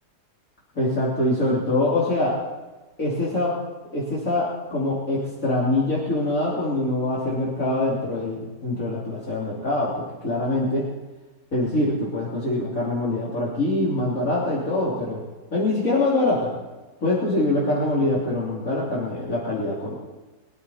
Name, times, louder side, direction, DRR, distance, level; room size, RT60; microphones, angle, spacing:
voice 1, 0.7-2.4 3.0-3.6 3.9-10.9 11.5-15.2 15.5-16.5 17.0-19.9, left 2 dB, 55° left, -7 dB, 3.3 m, -24 dB
23.0 x 11.0 x 4.1 m, 1.2 s
omnidirectional pair, 1.7 m